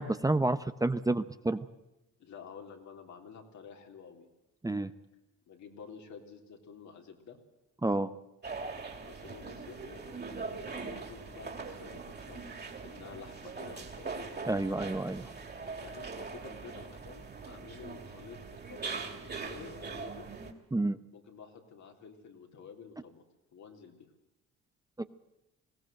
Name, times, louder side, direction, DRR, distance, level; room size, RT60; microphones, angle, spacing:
voice 1, 0.0-1.6 4.6-4.9 7.8-8.1 14.4-15.3 20.7-21.0 25.0-25.1, right 2 dB, 10° right, 11 dB, 0.8 m, -29 dB
voice 2, 2.2-4.3 5.5-7.4 9.0-14.1 15.8-18.4 18.7-20.3 21.1-23.2 23.5-24.1, left 6 dB, 70° left, 3 dB, 3.6 m, -50 dB
sound 1, 8.4-20.5, right 4 dB, 35° right, 2.9 m, -42 dB
21.0 x 16.5 x 7.7 m, 0.93 s
cardioid pair, 90°, 30 cm